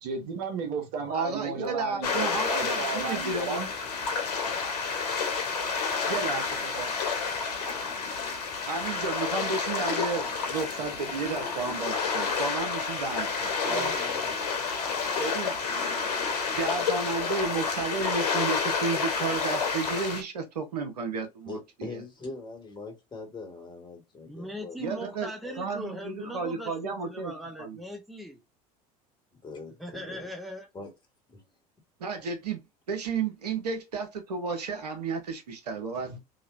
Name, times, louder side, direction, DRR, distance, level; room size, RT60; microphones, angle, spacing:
voice 1, 0.0-3.7, right 4 dB, 65° right, 1.1 m, -33 dB
voice 2, 1.1-3.7 6.1-6.9 8.7-13.9 15.2-15.6 16.5-21.6 21.9-22.0 24.8-25.3 25.6-27.3 27.6-27.8 32.0-32.6 32.9-36.2, right 4 dB, 85° right, 0.8 m, -32 dB
sound 1, 2.0-20.2, left 5 dB, 80° left, 0.9 m, -30 dB
voice 3, 13.7-14.4 24.3-28.4 29.8-30.7, equal, ahead, 0.8 m, -40 dB
voice 4, 21.4-25.0 25.4-25.6 29.4-30.3 30.7-30.9 31.3-31.4, left 3 dB, 25° left, 1.7 m, -42 dB
3.0 x 2.8 x 2.5 m
hypercardioid pair, 75°, 20 cm